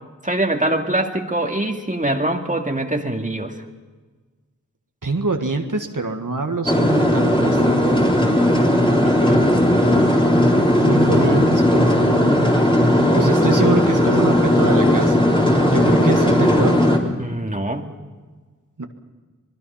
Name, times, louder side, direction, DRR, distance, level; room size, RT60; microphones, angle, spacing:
voice 1, 0.2-3.6 9.0-9.6 17.2-18.0, right 1 dB, 25° right, 3 dB, 2.2 m, -24 dB
voice 2, 5.0-8.0 10.8-12.5 13.2-15.2 15.7-16.8 18.8-18.9, right 3 dB, 80° right, 4 dB, 1.8 m, -25 dB
sound 1, 6.7-17.0, left 1 dB, 15° left, 3.9 m, -16 dB
25.5 x 21.0 x 5.7 m, 1.4 s
wide cardioid pair, 45°, 31 cm